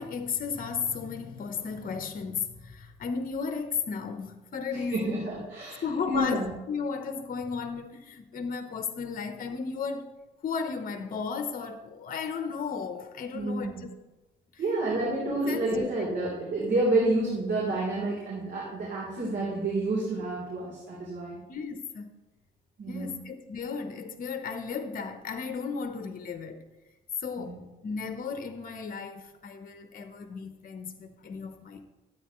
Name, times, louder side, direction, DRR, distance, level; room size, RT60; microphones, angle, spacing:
voice 1, 0.0-5.2 5.8-6.4 6.7-10.1 10.4-13.9 14.5-14.6 15.5-15.6 21.5-22.1 22.9-26.6 27.2-31.8, left 5 dB, 45° left, 1.0 m, -34 dB
voice 2, 4.9-6.5 13.3-13.8 14.6-21.4 22.8-23.2 27.4-27.6, right 2 dB, 60° right, 3.6 m, -29 dB
12.5 x 9.1 x 3.1 m
cardioid pair, 90°, 20 cm